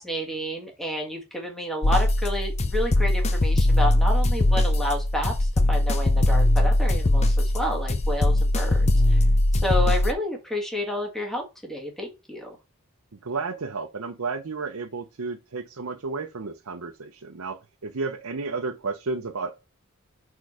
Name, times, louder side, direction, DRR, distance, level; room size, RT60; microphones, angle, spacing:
voice 1, 0.0-9.2 9.6-12.6, left 1 dB, ahead, 1.7 m, -30 dB
sound 1, 1.8-10.1, left 1 dB, 30° left, 0.6 m, -21 dB
voice 2, 13.2-19.6, right 4 dB, 85° right, 0.7 m, -32 dB
6.4 x 4.7 x 4.9 m
head